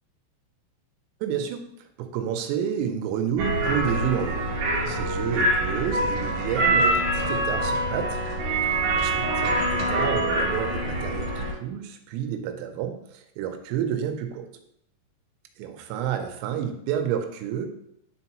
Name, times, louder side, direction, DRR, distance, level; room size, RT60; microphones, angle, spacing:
voice 1, 1.2-1.7 2.0-4.4 4.8-8.2 8.9-14.5 15.6-17.7, right 8 dB, 85° right, 6 dB, 3.3 m, -30 dB
sound 1, 3.4-11.5, right 1 dB, 70° right, 2.0 m, -25 dB
11.0 x 3.9 x 2.9 m, 0.74 s
omnidirectional pair, 5.8 m